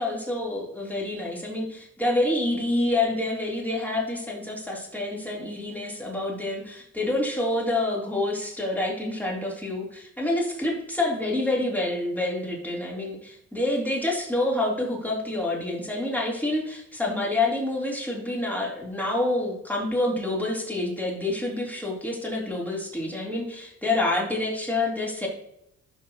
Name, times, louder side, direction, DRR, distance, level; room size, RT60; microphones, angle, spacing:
voice 1, 0.0-25.3, left 2 dB, 5° left, -3 dB, 3.5 m, -27 dB
12.5 x 5.4 x 3.0 m, 0.78 s
cardioid pair, 90°, 30 cm